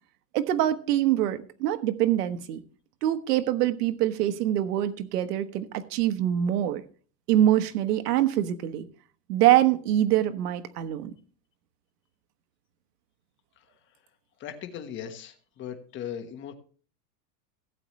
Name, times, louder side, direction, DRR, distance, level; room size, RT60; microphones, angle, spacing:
voice 1, 0.3-2.6 3.0-6.8 7.3-8.9 9.3-11.1, right 12 dB, 75° right, 9 dB, 1.2 m, -24 dB
voice 2, 14.4-16.5, left 9 dB, 25° left, 5 dB, 1.3 m, -38 dB
17.0 x 8.1 x 3.1 m, 0.40 s
supercardioid pair, 160°, 47 cm